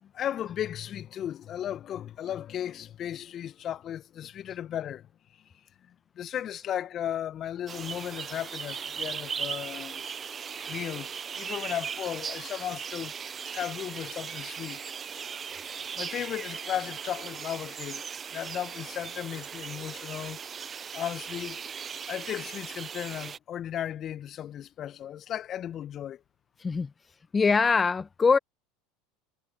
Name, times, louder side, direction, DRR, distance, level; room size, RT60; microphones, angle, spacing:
voice 1, 0.0-5.1 5.9-10.0 10.7-13.2 13.5-14.9 15.4-20.4 20.9-21.6 22.1-26.2, left 10 dB, 40° left, 1.4 m, -35 dB
sound 1, 7.7-23.4, right 7 dB, 30° right, 0.6 m, -38 dB
voice 2, 27.3-28.4, left 5 dB, 20° left, 1.5 m, -23 dB
hypercardioid pair, 80°, 0 cm